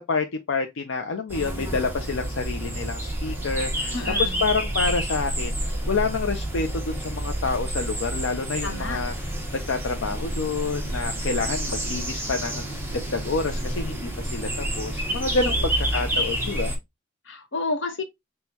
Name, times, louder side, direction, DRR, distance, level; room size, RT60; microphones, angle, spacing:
voice 1, 0.0-5.6 5.9-9.1 9.5-16.7, left 4 dB, 90° left, 0.5 m, -28 dB
sound 1, 1.3-16.8, right 1 dB, 10° right, 0.9 m, -29 dB
voice 2, 3.9-4.4 8.6-9.0 15.4-15.7 17.3-18.0, left 3 dB, 70° left, 0.9 m, -30 dB
6.1 x 2.3 x 2.8 m
head